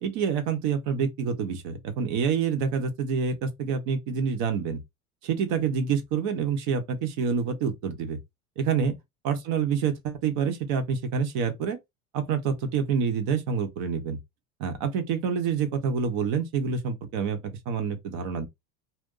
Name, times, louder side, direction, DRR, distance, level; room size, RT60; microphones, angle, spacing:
voice 1, 0.0-4.8 5.2-8.2 8.6-9.0 9.2-11.8 12.1-14.2 14.6-18.5, right 6 dB, 60° right, 1.1 m, -27 dB
2.6 x 2.2 x 3.7 m
hypercardioid pair, 95°, 42 cm